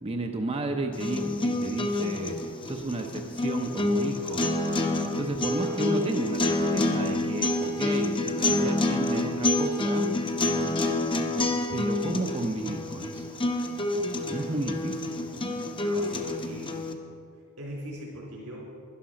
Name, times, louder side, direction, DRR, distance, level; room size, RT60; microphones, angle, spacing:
voice 1, 0.0-4.5 4.8-10.1 11.7-13.4 14.3-15.6, right 2 dB, 25° right, 3 dB, 0.7 m, -33 dB
sound 1, 0.9-16.9, left 2 dB, 20° left, 0.9 m, -28 dB
voice 2, 14.3-14.6 15.8-16.9 17.3-18.6, equal, 80° right, -3 dB, 3.3 m, -41 dB
11.5 x 11.0 x 6.3 m, 2.4 s
head